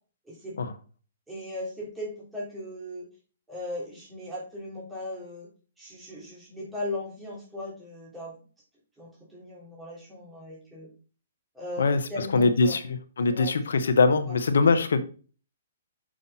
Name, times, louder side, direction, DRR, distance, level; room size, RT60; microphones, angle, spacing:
voice 1, 1.3-3.1 3.5-5.5 5.8-8.3 9.0-10.9 11.5-12.8 13.2-13.5, left 1 dB, 5° right, -6 dB, 3.5 m, -38 dB
voice 2, 11.8-15.0, left 4 dB, 80° left, 11 dB, 1.0 m, -23 dB
6.4 x 5.3 x 4.3 m, 0.37 s
hypercardioid pair, 135°, 0 cm